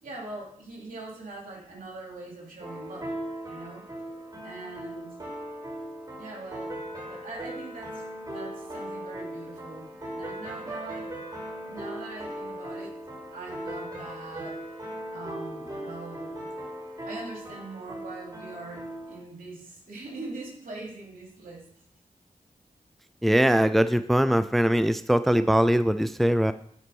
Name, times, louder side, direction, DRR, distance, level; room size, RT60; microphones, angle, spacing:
voice 1, 0.0-3.1 3.4-3.8 4.4-5.1 6.2-6.7 7.0-11.1 11.6-12.9 13.3-14.6 15.1-16.5 17.1-21.7, right 3 dB, 85° right, -2 dB, 2.9 m, -42 dB
October Rose, 2.6-19.2, right 1 dB, 30° right, 3.6 m, -38 dB
voice 2, 23.2-26.5, equal, ahead, 12 dB, 0.4 m, -21 dB
9.6 x 4.2 x 5.3 m, 0.63 s
cardioid pair, 55°, 14 cm